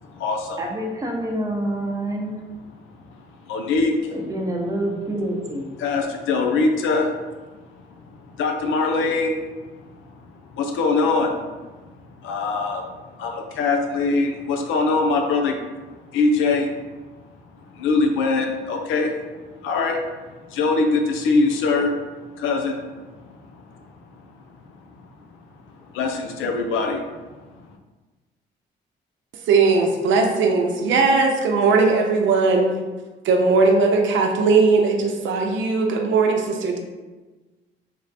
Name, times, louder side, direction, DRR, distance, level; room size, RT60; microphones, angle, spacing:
voice 1, 0.0-0.6 3.5-4.1 5.8-7.6 8.0-9.5 10.5-11.5 12.2-12.9 13.2-15.5 16.1-16.8 17.6-19.1 19.6-20.1 20.5-21.9 22.4-23.9 24.1-24.2 25.7-27.2 27.5-27.6, left 3 dB, 85° left, 3 dB, 0.5 m, -23 dB
voice 2, 0.6-2.4 4.1-5.7, right 1 dB, 15° right, -1 dB, 0.8 m, -27 dB
voice 3, 29.5-32.8 33.2-36.8, right 4 dB, 75° right, 3 dB, 0.6 m, -18 dB
3.4 x 2.1 x 4.1 m, 1.2 s
cardioid pair, 90°, 20 cm